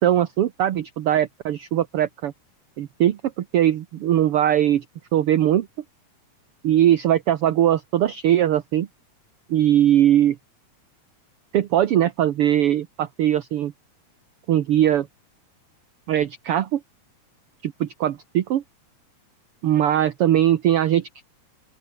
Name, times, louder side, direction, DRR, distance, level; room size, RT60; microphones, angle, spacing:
voice 1, 0.0-2.3 2.8-4.8 5.1-5.7 6.6-8.9 9.5-10.4 11.5-13.7 14.5-15.1 16.1-16.8 17.6-18.6 19.6-21.2, right 11 dB, 60° right, 1.7 m, -20 dB
open air
omnidirectional pair, 3.4 m